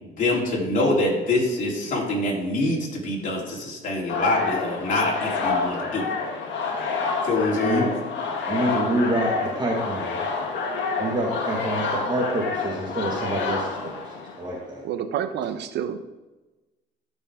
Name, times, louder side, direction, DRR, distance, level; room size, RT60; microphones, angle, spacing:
voice 1, 0.0-6.1 7.2-7.9, left 2 dB, 45° left, -4 dB, 3.4 m, -25 dB
Umbrella Movement Protest, 4.1-14.6, left 4 dB, 80° left, 1.6 m, -28 dB
voice 2, 8.5-10.2 11.0-13.9 14.4-14.8, right 1 dB, 25° right, -3 dB, 1.8 m, -26 dB
voice 3, 14.8-16.0, right 9 dB, 70° right, 10 dB, 0.8 m, -28 dB
13.5 x 5.3 x 3.6 m, 1.1 s
cardioid pair, 110°, 19 cm